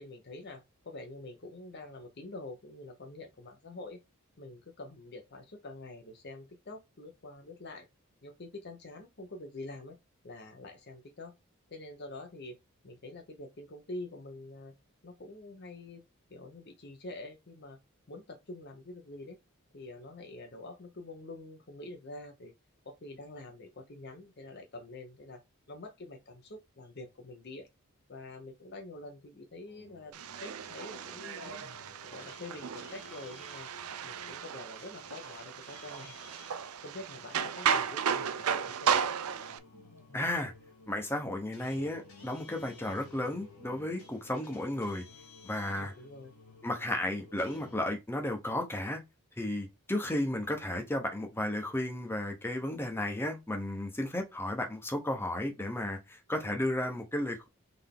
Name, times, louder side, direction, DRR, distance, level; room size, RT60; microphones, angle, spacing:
voice 1, 0.0-4.0 4.4-7.9 8.2-10.0 10.2-11.4 11.7-12.6 12.8-14.7 15.0-16.0 16.3-17.8 18.1-19.4 19.7-22.5 22.8-25.4 25.7-27.7 28.1-31.7 32.0-33.7 34.0-36.2 36.8-38.9 45.7-46.3, left 2 dB, 50° left, 0.8 m, -46 dB
sound 1, 29.7-47.8, left 3 dB, 85° left, 1.7 m, -55 dB
sound 2, 30.1-39.6, right 7 dB, 80° right, 0.5 m, -34 dB
voice 2, 40.1-40.5 40.9-45.0 45.4-45.9 46.6-49.0 49.4-57.5, left 1 dB, 10° left, 0.9 m, -33 dB
3.8 x 3.5 x 3.6 m
head